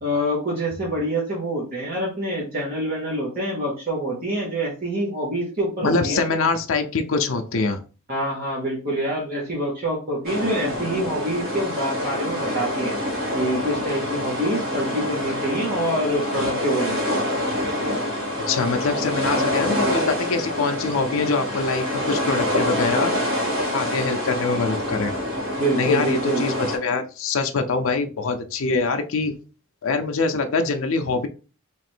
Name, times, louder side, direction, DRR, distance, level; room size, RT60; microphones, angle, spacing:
voice 1, 0.0-6.2 8.1-12.9 13.3-17.2 25.6-26.5, equal, 40° right, -5 dB, 1.0 m, -26 dB
voice 2, 5.8-7.8 18.5-23.1 23.7-25.1 25.8-29.3 29.8-31.3, left 4 dB, 65° left, 5 dB, 0.5 m, -24 dB
sound 1, 10.2-26.8, left 1 dB, 65° right, 1.6 m, -26 dB
3.1 x 2.5 x 4.3 m, 0.35 s
head